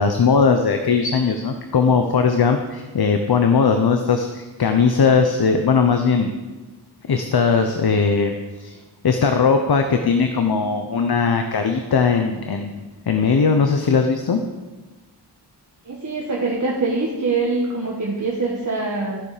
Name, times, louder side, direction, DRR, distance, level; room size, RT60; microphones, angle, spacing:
voice 1, 0.0-6.3 7.1-8.3 8.6-8.7 9.0-14.4, left 5 dB, 65° left, 6 dB, 0.8 m, -19 dB
voice 2, 15.9-19.2, right 3 dB, 45° right, -3 dB, 1.4 m, -24 dB
13.0 x 6.9 x 5.0 m, 1.2 s
wide cardioid pair, 95°, 41 cm